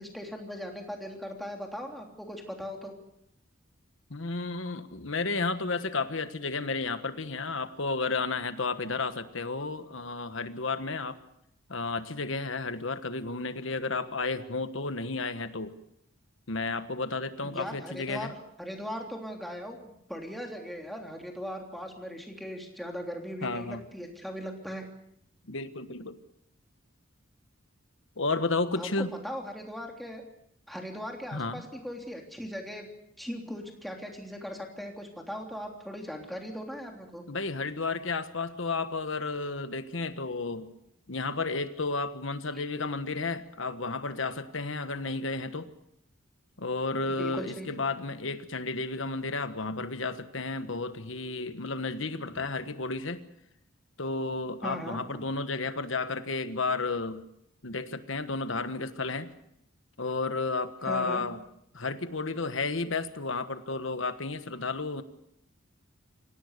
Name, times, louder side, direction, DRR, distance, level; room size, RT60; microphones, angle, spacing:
voice 1, 0.0-2.9 17.4-19.8 20.1-24.8 28.8-30.2 30.7-32.8 33.2-37.2 42.5-42.6 47.1-47.7 54.6-55.2 60.8-61.2, equal, ahead, 1 dB, 3.3 m, -39 dB
voice 2, 4.1-11.2 11.7-15.7 16.5-18.3 23.4-23.8 25.5-26.2 28.2-29.1 31.3-31.6 37.3-40.7 41.1-45.7 46.6-53.2 54.0-57.2 57.6-59.3 60.0-61.4 61.7-65.0, left 3 dB, 65° left, 11 dB, 1.4 m, -32 dB
25.5 x 17.5 x 6.7 m, 0.75 s
head